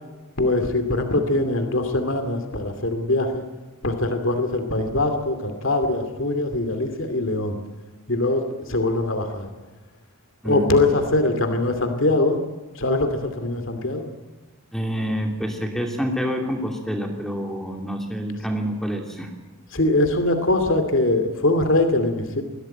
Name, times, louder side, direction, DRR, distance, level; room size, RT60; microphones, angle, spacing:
voice 1, 0.4-3.4 3.8-7.6 8.1-9.5 10.4-12.4 12.8-14.1 19.7-22.4, left 2 dB, 60° left, 7 dB, 2.5 m, -22 dB
voice 2, 10.4-10.8 14.7-19.3, equal, ahead, 3 dB, 2.8 m, -27 dB
22.5 x 16.5 x 9.2 m, 1.3 s
head